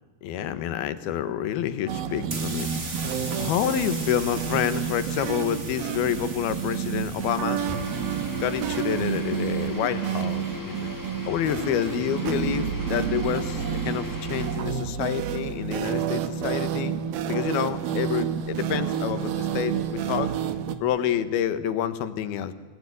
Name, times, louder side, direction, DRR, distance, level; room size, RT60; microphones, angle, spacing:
voice 1, 0.2-2.7 3.3-7.6 8.4-10.9 11.3-16.9 17.3-20.3 20.8-22.5, left 10 dB, 75° left, 12 dB, 3.2 m, -28 dB
sound 1, 1.9-20.8, right 9 dB, 75° right, 3.2 m, -29 dB
sound 2, 2.2-9.7, right 3 dB, 25° right, 2.0 m, -39 dB
sound 3, 7.6-14.7, left 2 dB, 5° left, 2.9 m, -37 dB
28.5 x 19.5 x 9.5 m, 1.2 s
omnidirectional pair, 4.5 m